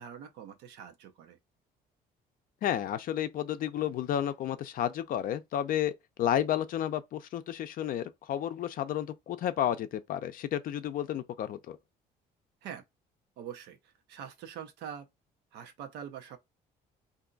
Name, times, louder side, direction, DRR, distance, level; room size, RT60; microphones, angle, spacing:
voice 1, 0.0-1.4 12.6-12.8 13.4-15.1 15.5-16.4, right 9 dB, 85° right, 0.7 m, -44 dB
voice 2, 2.6-5.9 6.2-11.8, left 10 dB, 55° left, 0.5 m, -31 dB
2.6 x 2.3 x 3.8 m
cardioid pair, 110°, 17 cm